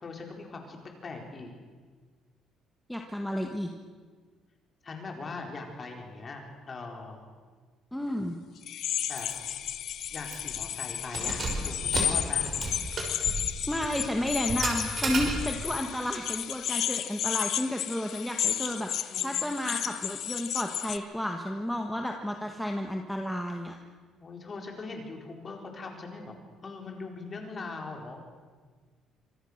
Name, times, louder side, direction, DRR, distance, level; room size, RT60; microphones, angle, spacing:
voice 1, 0.0-1.5 4.8-7.2 9.1-9.3 10.1-12.4 19.1-19.7 24.2-26.4 26.6-28.2, left 3 dB, 25° left, 2 dB, 4.4 m, -41 dB
voice 2, 2.9-3.7 7.9-8.4 13.7-23.8, left 1 dB, ahead, 2 dB, 1.4 m, -32 dB
sound 1, 8.6-21.0, left 10 dB, 55° left, 1.0 m, -32 dB
Keys jangling, 9.1-9.3 9.7-9.8 10.2-10.6 11.0-15.8, right 3 dB, 35° right, 5.7 m, -33 dB
27.0 x 25.5 x 6.6 m, 1.5 s
cardioid pair, 165°, 0 cm